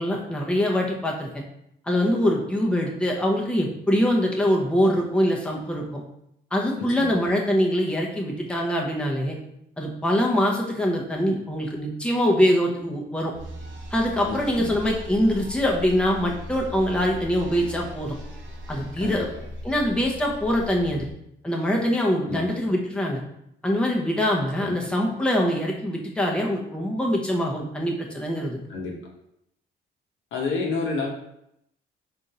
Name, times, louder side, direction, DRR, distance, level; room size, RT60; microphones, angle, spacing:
voice 1, 0.0-1.4 1.9-6.0 6.5-9.4 9.8-13.3 13.9-18.2 18.7-19.3 19.6-21.1 21.4-23.2 23.6-28.6, equal, 5° left, -1 dB, 0.8 m, -23 dB
voice 2, 6.8-7.3 14.3-14.7 19.0-19.2 22.3-22.6 24.6-24.8 28.7-28.9 30.3-31.1, left 4 dB, 80° left, -1 dB, 1.0 m, -30 dB
sound 1, 13.3-21.1, equal, 70° right, 0.9 m, -39 dB
3.5 x 2.7 x 4.1 m, 0.78 s
cardioid pair, 90°, 20 cm